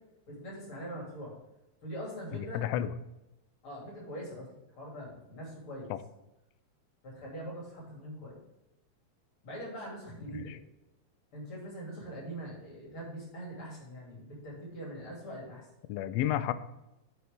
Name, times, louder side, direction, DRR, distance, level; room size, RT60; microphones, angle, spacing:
voice 1, 0.3-1.3 1.8-2.6 3.6-4.5 4.8-5.9 7.0-8.4 9.4-10.6 11.3-15.7, equal, 45° left, -3 dB, 3.7 m, -42 dB
voice 2, 2.3-2.9 5.9-6.0 10.3-10.6 15.9-16.5, left 12 dB, 85° left, 12 dB, 1.4 m, -31 dB
9.5 x 7.1 x 3.6 m, 0.93 s
omnidirectional pair, 3.5 m